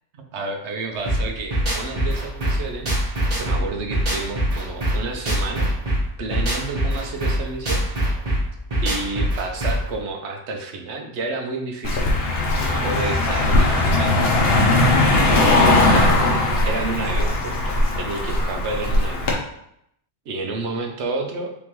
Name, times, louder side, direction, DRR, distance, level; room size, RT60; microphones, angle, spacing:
voice 1, 0.1-2.9 3.4-5.7 6.2-7.9 8.8-12.1 12.6-14.2 15.3-19.3 20.3-21.5, right 3 dB, 70° right, 3 dB, 1.0 m, -30 dB
sound 1, 1.1-9.9, equal, 35° right, 1.1 m, -23 dB
Car passing by, 11.8-19.3, left 2 dB, 60° left, 0.9 m, -19 dB
3.7 x 3.6 x 3.0 m, 0.74 s
omnidirectional pair, 1.2 m